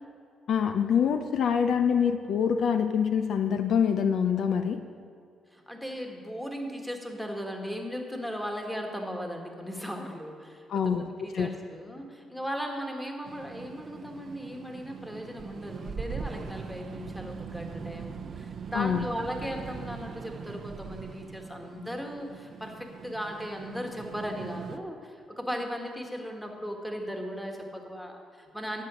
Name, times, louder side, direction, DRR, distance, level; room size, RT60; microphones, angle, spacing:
voice 1, 0.5-4.8 10.7-11.1 11.3-11.5 18.7-19.1, left 7 dB, 65° left, 8 dB, 0.5 m, -25 dB
voice 2, 5.5-28.8, equal, 5° left, 2 dB, 1.7 m, -37 dB
sound 1, 13.3-24.8, right 6 dB, 50° right, 0.6 m, -41 dB
11.5 x 7.8 x 6.3 m, 2.3 s
cardioid pair, 90°, 0 cm